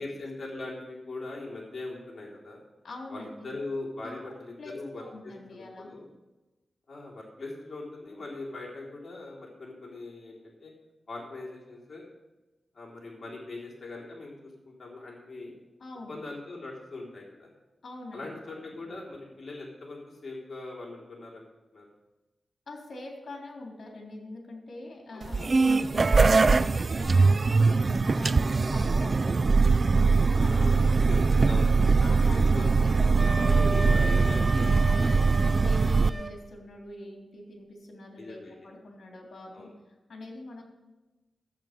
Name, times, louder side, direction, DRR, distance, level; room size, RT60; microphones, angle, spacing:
voice 1, 0.0-2.6 3.1-6.1 6.9-10.7 11.1-12.1 12.7-15.5 16.1-17.5 18.1-21.5 21.7-21.9 25.1-26.0 30.5-31.9 32.3-32.9 33.2-35.2 35.9-36.2 38.2-38.7 39.5-39.7, left 2 dB, 50° left, -4 dB, 3.6 m, -41 dB
voice 2, 2.8-3.5 4.0-5.9 15.8-16.2 17.8-18.8 22.7-29.5 30.1-31.4 31.9-33.6 34.0-39.7 40.1-40.6, left 2 dB, 65° left, 0 dB, 3.2 m, -44 dB
sound 1, 25.2-36.1, right 4 dB, 50° right, 0.4 m, -22 dB
Wind instrument woodwind instrument, 33.2-36.3, right 2 dB, 30° right, 1.1 m, -35 dB
13.5 x 7.8 x 5.2 m, 1.1 s
cardioid pair, 70°, 0 cm